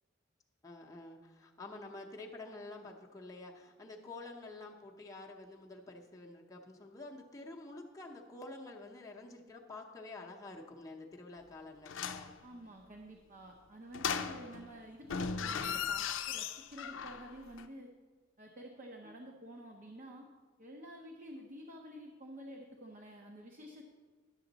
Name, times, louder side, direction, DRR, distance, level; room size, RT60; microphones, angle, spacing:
voice 1, 0.6-12.3 21.3-21.5, left 2 dB, 15° left, -2 dB, 0.7 m, -49 dB
sound 1, 11.9-12.3 13.9-14.7 15.0-17.3 17.6-17.7, left 6 dB, 80° left, 0.5 m, -37 dB
voice 2, 12.4-17.9 18.4-20.3 20.6-23.8, equal, 45° right, 1 dB, 0.7 m, -50 dB
10.5 x 7.0 x 3.9 m, 1.5 s
head